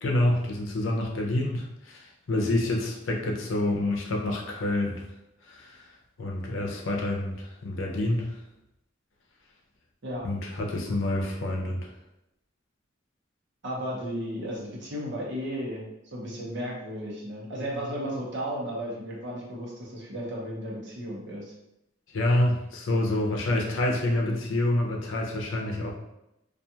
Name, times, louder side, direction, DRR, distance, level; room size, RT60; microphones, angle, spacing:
voice 1, 0.0-5.0 5.5-5.9 6.2-8.3 10.2-11.9 22.1-25.9, left 1 dB, 75° left, 0 dB, 0.6 m, -27 dB
voice 2, 13.6-15.8 16.1-21.4, equal, 60° right, -3 dB, 0.8 m, -34 dB
2.4 x 2.3 x 2.7 m, 0.87 s
head